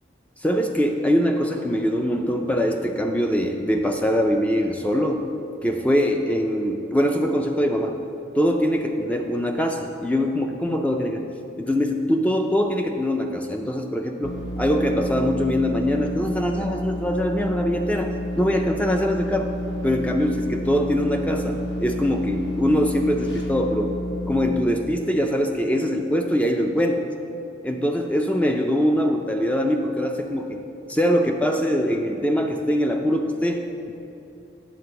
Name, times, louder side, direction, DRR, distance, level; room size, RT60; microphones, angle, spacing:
voice 1, 0.4-5.2 5.6-8.0 8.4-11.3 11.6-19.5 19.8-23.9 24.3-27.1 27.6-30.6 30.9-33.9, equal, 5° left, 3 dB, 0.3 m, -23 dB
sound 1, 14.2-24.5, left 1 dB, 70° left, 1.2 m, -30 dB
8.6 x 4.0 x 6.6 m, 2.8 s
head